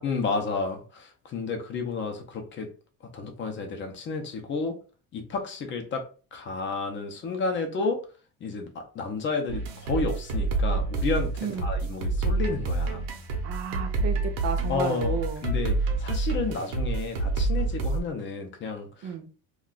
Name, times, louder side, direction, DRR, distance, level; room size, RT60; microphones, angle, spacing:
voice 1, 0.0-2.7 3.1-4.8 5.1-6.0 6.3-8.0 8.4-13.1 14.7-19.3, left 4 dB, 35° left, 5 dB, 0.5 m, -31 dB
sound 1, 9.5-18.0, right 3 dB, 75° right, 0.8 m, -28 dB
voice 2, 13.4-15.4 19.0-19.3, right 7 dB, 45° right, 6 dB, 0.5 m, -32 dB
2.3 x 2.3 x 3.8 m, 0.38 s
cardioid pair, 160°, 35 cm